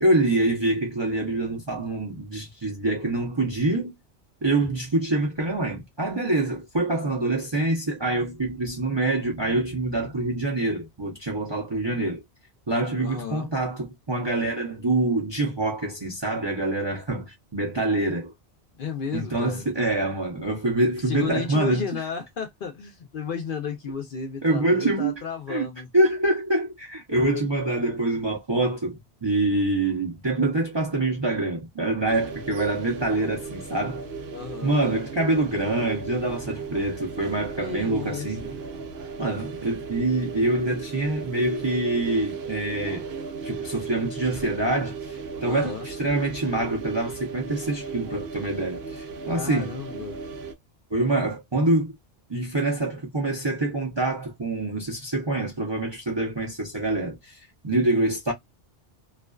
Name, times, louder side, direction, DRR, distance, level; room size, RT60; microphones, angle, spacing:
voice 1, 0.0-3.9 4.4-12.2 12.7-18.3 19.1-21.9 24.4-25.1 25.5-25.7 25.9-34.0 34.6-38.4 39.2-43.0 43.4-49.7 50.9-52.0 52.3-58.3, right 2 dB, 30° right, 0.5 m, -25 dB
voice 2, 13.0-13.5 18.8-19.7 21.1-25.9 34.3-34.7 37.6-38.5 45.4-45.9 49.3-50.2, left 6 dB, 60° left, 0.6 m, -33 dB
sound 1, 32.1-50.5, right 5 dB, 70° right, 0.8 m, -36 dB
2.4 x 2.2 x 2.2 m
omnidirectional pair, 1.2 m